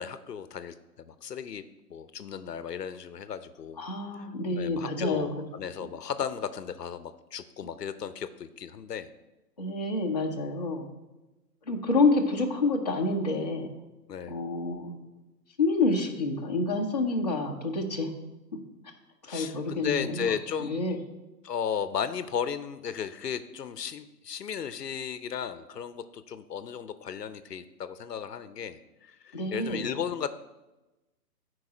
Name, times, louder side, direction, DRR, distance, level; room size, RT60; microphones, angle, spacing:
voice 1, 0.0-1.6 1.9-3.8 4.6-9.1 14.1-14.4 19.2-20.7 21.4-30.3, left 7 dB, 70° left, 12 dB, 0.7 m, -35 dB
voice 2, 3.8-5.3 9.6-10.9 11.7-13.7 14.3-15.0 15.6-18.1 19.3-20.3 20.6-21.0 29.3-29.9, left 3 dB, 25° left, -2 dB, 0.7 m, -28 dB
13.0 x 4.8 x 5.0 m, 1.0 s
hypercardioid pair, 170°, 49 cm